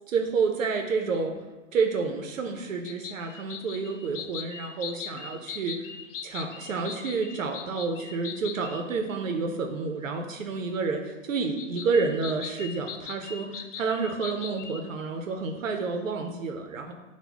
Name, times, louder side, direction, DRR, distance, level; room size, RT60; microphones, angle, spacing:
voice 1, 0.1-1.3 1.7-5.8 6.2-16.9, right 4 dB, 85° right, 4 dB, 0.6 m, -29 dB
sound 1, 2.8-8.8 11.6-14.8, left 7 dB, 70° left, 0.5 m, -40 dB
6.0 x 2.2 x 3.4 m, 1.1 s
hypercardioid pair, 130°, 38 cm